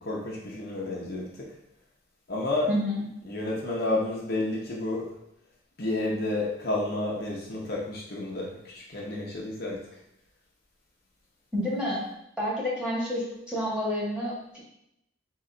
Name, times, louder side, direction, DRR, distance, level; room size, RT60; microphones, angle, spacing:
voice 1, 0.0-1.5 2.3-2.7 3.2-5.1 5.8-9.8, left 2 dB, 50° left, -4 dB, 0.8 m, -30 dB
voice 2, 2.7-3.1 11.5-12.0 12.4-14.6, left 1 dB, 5° right, -7 dB, 1.4 m, -29 dB
3.8 x 3.0 x 4.3 m, 0.81 s
head